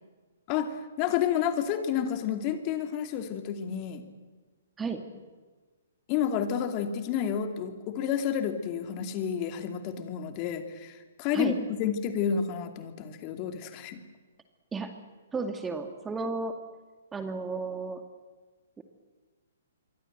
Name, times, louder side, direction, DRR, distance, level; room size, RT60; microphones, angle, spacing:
voice 1, 0.5-4.0 6.1-14.0, left 8 dB, 35° left, 7 dB, 2.7 m, -30 dB
voice 2, 15.3-16.6 17.1-18.0 18.8-18.9, right 4 dB, 10° right, 7 dB, 2.3 m, -33 dB
27.0 x 23.5 x 8.0 m, 1.3 s
figure-of-eight pair, 125°, 0 cm